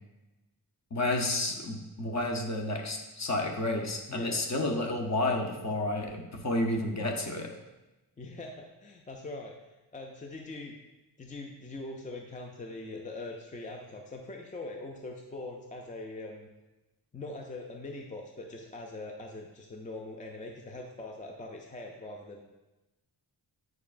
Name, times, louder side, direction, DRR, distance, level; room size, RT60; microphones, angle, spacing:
voice 1, 0.9-7.5, left 2 dB, 40° left, 2 dB, 0.8 m, -31 dB
voice 2, 4.1-4.4 8.2-9.6 9.9-10.8 11.2-16.5 17.1-22.4, left 2 dB, 20° left, 1 dB, 0.4 m, -42 dB
9.0 x 4.6 x 2.5 m, 1.1 s
wide cardioid pair, 180°, 42 cm